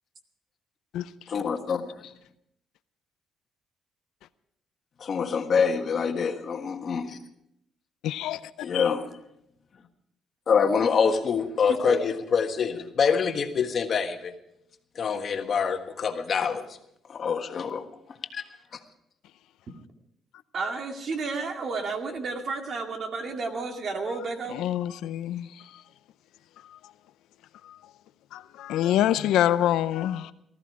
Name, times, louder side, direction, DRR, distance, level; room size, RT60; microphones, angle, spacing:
voice 1, 1.3-1.9 5.0-7.2 8.6-9.0 10.5-14.3 14.9-16.6 17.1-17.8 18.3-18.4, left 6 dB, 45° left, 1.6 m, -25 dB
voice 2, 8.0-8.4 8.7-8.9 24.5-25.5 28.3-30.3, left 12 dB, 85° left, 0.6 m, -25 dB
voice 3, 11.7-12.0 20.5-24.6, right 4 dB, 45° right, 2.2 m, -32 dB
19.0 x 14.0 x 4.8 m
cardioid pair, 125°, 0 cm